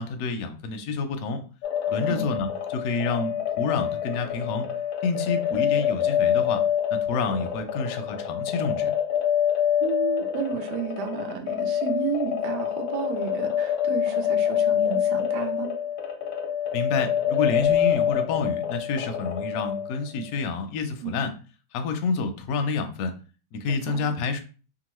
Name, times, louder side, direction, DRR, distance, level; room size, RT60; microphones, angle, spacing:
voice 1, 0.0-1.4 1.9-4.7 5.0-6.6 6.9-8.9 16.7-21.3 21.7-23.1 23.5-24.4, left 4 dB, 70° left, 7 dB, 0.9 m, -28 dB
sound 1, 1.6-20.1, left 9 dB, 90° left, 1.3 m, -26 dB
voice 2, 9.8-15.7 21.0-21.3 23.7-24.1, right 8 dB, 80° right, 6 dB, 1.2 m, -32 dB
2.9 x 2.4 x 3.0 m, 0.37 s
omnidirectional pair, 1.8 m